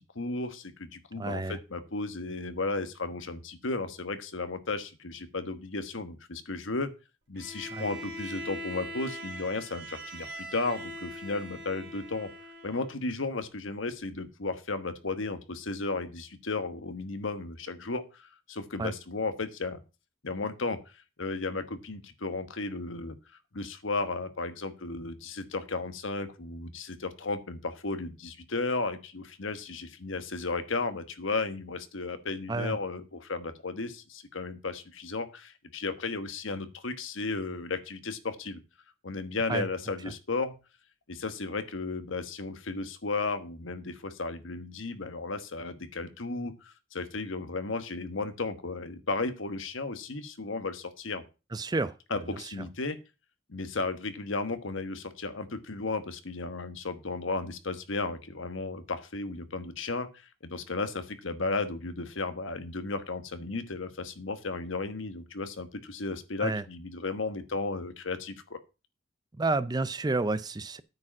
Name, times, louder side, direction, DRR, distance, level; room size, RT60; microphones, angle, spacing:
voice 1, 0.0-6.9 7.3-12.3 12.6-19.8 20.2-23.1 23.5-38.6 39.0-40.5 41.1-51.2 52.1-53.0 53.5-68.6, left 3 dB, 75° left, 1.2 m, -34 dB
voice 2, 1.2-1.6 7.7-7.8 18.8-18.9 32.5-32.8 39.5-39.7 51.5-52.5 66.4-66.6 69.4-70.8, right 3 dB, 20° right, 0.4 m, -30 dB
Bowed string instrument, 7.3-13.0, equal, 55° right, 2.8 m, -41 dB
9.4 x 5.1 x 7.3 m
head